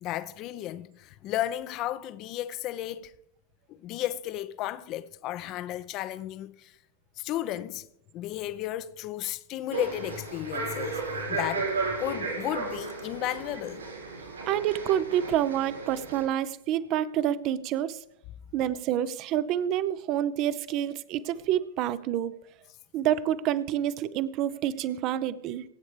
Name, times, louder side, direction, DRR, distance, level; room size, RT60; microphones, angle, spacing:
voice 1, 0.0-3.1 3.7-6.7 7.2-7.9 8.1-13.8, left 13 dB, 40° left, 0.7 m, -34 dB
sound 1, 9.7-16.2, right 3 dB, 70° right, 6.0 m, -34 dB
voice 2, 14.4-18.0 18.5-22.3 22.9-25.6, right 11 dB, 40° right, 0.8 m, -28 dB
24.5 x 8.5 x 3.4 m
figure-of-eight pair, 90°, 0 cm